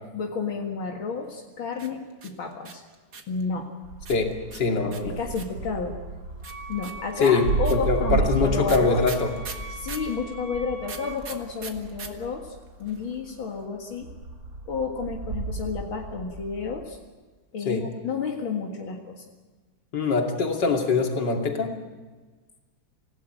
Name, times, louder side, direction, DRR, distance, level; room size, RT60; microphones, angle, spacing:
voice 1, 0.1-2.8 3.3-3.7 4.8-6.0 6.7-9.1 9.7-14.1 14.7-17.0 17.5-19.2, left 5 dB, 80° left, 1 dB, 2.7 m, -31 dB
sound 1, 1.7-3.4 4.1-5.7 6.4-10.1 10.8-12.1 12.4-12.5 12.6-13.1, right 5 dB, 55° right, 2.3 m, -40 dB
sound 2, 3.8-13.5 14.0-16.8, right 3 dB, 70° right, 3.8 m, -33 dB
voice 2, 4.1-5.2 7.2-9.3 17.6-17.8 19.9-21.7, left 4 dB, 60° left, 2 dB, 3.2 m, -23 dB
Wind instrument woodwind instrument, 6.4-11.3, right 1 dB, 15° left, 1.5 m, -43 dB
27.0 x 17.0 x 9.1 m, 1.3 s
omnidirectional pair, 2.2 m